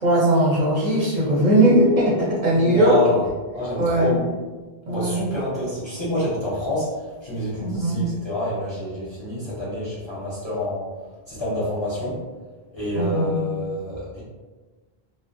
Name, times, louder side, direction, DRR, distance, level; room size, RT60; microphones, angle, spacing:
voice 1, 0.0-3.0 3.8-4.2 4.9-5.3 7.6-8.0 12.9-13.4, right 1 dB, 50° right, -7 dB, 0.6 m, -19 dB
voice 2, 2.5-3.2 3.5-4.2 4.9-10.9 11.3-12.2 12.7-14.2, left 1 dB, 35° left, -9 dB, 0.5 m, -27 dB
2.4 x 2.0 x 2.5 m, 1.3 s
omnidirectional pair, 1.1 m